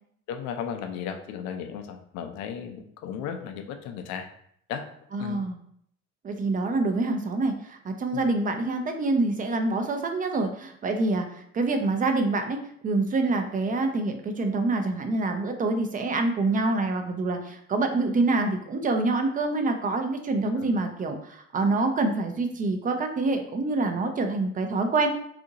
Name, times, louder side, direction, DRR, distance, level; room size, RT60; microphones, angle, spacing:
voice 1, 0.3-4.3 4.7-4.9 5.2-5.4 8.1-8.3 20.6-20.7, left 7 dB, 75° left, 6 dB, 0.5 m, -35 dB
voice 2, 5.1-5.6 6.2-12.6 12.8-25.1, right 3 dB, 30° right, 6 dB, 0.5 m, -26 dB
2.7 x 2.5 x 3.8 m, 0.68 s
cardioid pair, 115°, 30 cm